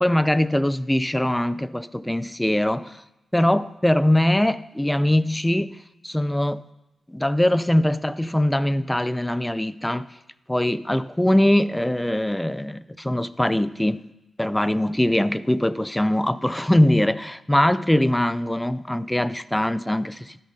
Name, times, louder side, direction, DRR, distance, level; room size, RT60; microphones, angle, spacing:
voice 1, 0.0-2.9 3.3-5.8 6.0-6.6 7.1-10.1 10.5-14.1 14.4-20.4, left 1 dB, 10° left, 0.4 m, -22 dB
12.5 x 9.4 x 2.7 m
cardioid pair, 60°, 0 cm